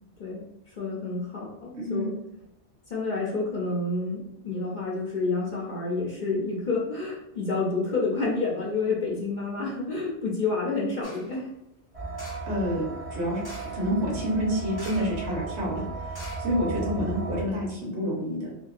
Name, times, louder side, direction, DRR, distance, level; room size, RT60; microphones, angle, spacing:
voice 1, 0.2-2.1 2.9-11.5 16.8-17.1, left 3 dB, 50° left, -4 dB, 0.6 m, -29 dB
voice 2, 1.7-2.1 12.5-12.8 13.1-13.4 13.7-18.5, equal, 75° right, -3 dB, 1.2 m, -28 dB
sound 1, 11.0-11.4 12.1-12.6 13.4-13.9 14.7-15.2 15.5-15.6 16.1-17.0 17.5-17.6, left 1 dB, 20° left, 0.8 m, -45 dB
sound 2, 11.9-17.4, right 4 dB, 40° right, 0.6 m, -35 dB
2.8 x 2.7 x 2.4 m, 0.83 s
omnidirectional pair, 1.2 m